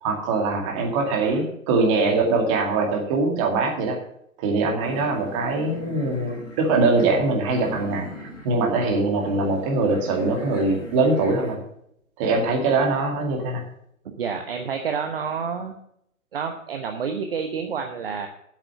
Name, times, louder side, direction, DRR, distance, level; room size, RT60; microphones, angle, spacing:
voice 1, 0.0-4.0 4.4-11.6 12.2-13.6, right 3 dB, 25° right, 1 dB, 2.2 m, -22 dB
sound 1, 4.8-11.5, equal, 60° left, 4.0 m, -39 dB
voice 2, 14.0-15.7 16.3-18.3, right 6 dB, 45° right, 5 dB, 1.1 m, -29 dB
8.5 x 7.3 x 8.0 m, 0.73 s
figure-of-eight pair, 135°, 41 cm